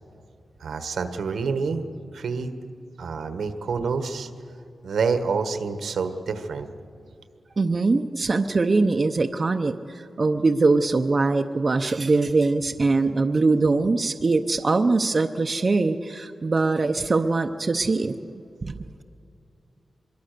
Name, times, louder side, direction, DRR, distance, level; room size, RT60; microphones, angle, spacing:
voice 1, 0.6-1.8 2.1-2.5 3.0-4.3 4.8-6.7, right 5 dB, 85° right, 9 dB, 1.4 m, -27 dB
voice 2, 7.6-9.8 10.2-18.2 18.6-19.0, right 3 dB, 35° right, 6 dB, 0.7 m, -22 dB
25.0 x 22.5 x 6.7 m, 2.5 s
wide cardioid pair, 125°, 0 cm